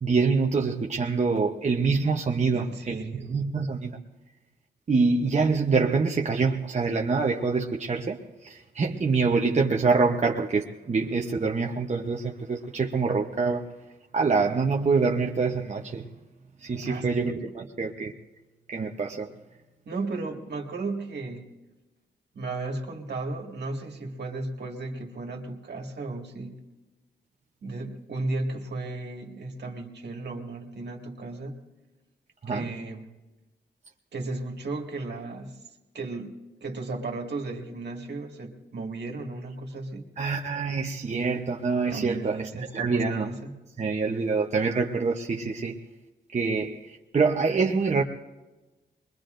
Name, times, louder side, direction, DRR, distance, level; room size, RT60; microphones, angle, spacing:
voice 1, 0.0-3.9 4.9-13.7 14.1-16.1 16.6-18.1 18.7-19.3 32.4-32.6 40.2-43.3 43.8-45.8 46.3-48.0, right 4 dB, 40° right, 0.9 m, -25 dB
voice 2, 2.5-3.3 16.8-17.1 17.4-17.5 19.9-21.5 22.3-26.6 27.6-31.6 32.5-33.1 34.1-35.6 35.9-40.1 41.9-43.6, right 3 dB, 65° right, 1.9 m, -35 dB
24.0 x 21.5 x 2.6 m
cardioid pair, 80°, 18 cm